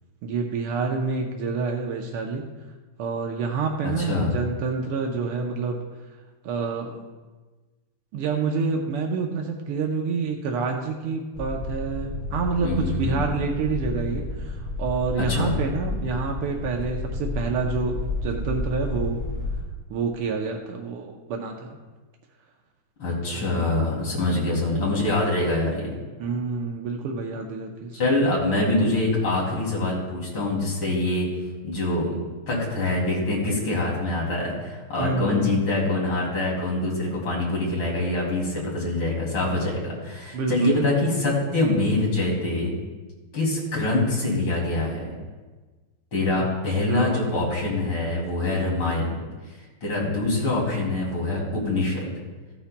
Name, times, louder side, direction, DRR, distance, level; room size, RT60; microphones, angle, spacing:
voice 1, 0.2-2.4 3.0-5.8 6.4-7.0 8.1-19.2 19.9-21.8 23.3-23.8 24.1-24.6 26.2-28.0 35.0-35.6 40.3-40.9 46.4-46.5 46.9-47.3, right 4 dB, 90° right, 1 dB, 1.7 m, -28 dB
voice 2, 3.8-4.3 12.6-13.2 15.3-15.5 23.0-25.9 27.9-31.3 31.6-32.2 32.5-42.7 43.3-45.1 46.1-49.1 49.8-52.0, left 2 dB, 70° left, -4 dB, 3.6 m, -24 dB
sound 1, 11.3-19.6, left 2 dB, 25° left, 1.6 m, -31 dB
16.0 x 9.7 x 2.2 m, 1.3 s
omnidirectional pair, 2.4 m